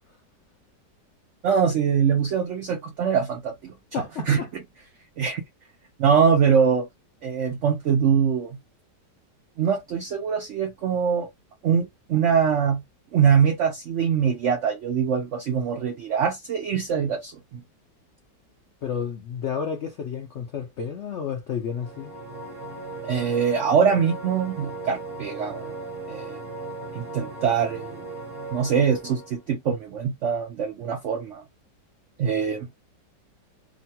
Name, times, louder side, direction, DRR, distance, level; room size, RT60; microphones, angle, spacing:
voice 1, 1.4-4.4 5.2-5.4 6.0-6.9 7.2-8.6 9.6-11.3 11.6-12.8 13.1-17.6 23.1-25.7 26.1-26.4 26.9-28.0 28.5-31.4 32.2-32.7, right 7 dB, 65° right, 0.7 m, -23 dB
voice 2, 3.9-4.5 18.8-22.1, left 7 dB, 90° left, 0.6 m, -31 dB
sound 1, 21.6-29.4, right 2 dB, 45° right, 1.3 m, -37 dB
3.0 x 2.2 x 2.7 m
omnidirectional pair, 1.9 m